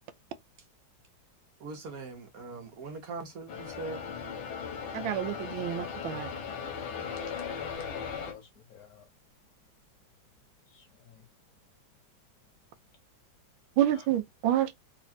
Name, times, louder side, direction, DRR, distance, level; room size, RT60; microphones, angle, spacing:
voice 1, 1.6-4.0, right 4 dB, 60° right, 1.1 m, -41 dB
sound 1, 3.5-8.3, left 6 dB, 85° left, 1.8 m, -37 dB
voice 2, 4.9-6.3 13.8-14.7, right 11 dB, 85° right, 1.4 m, -28 dB
voice 3, 7.6-9.1 10.7-11.3 13.9-14.1, left 8 dB, 60° left, 1.0 m, -54 dB
4.0 x 2.8 x 2.6 m
omnidirectional pair, 2.2 m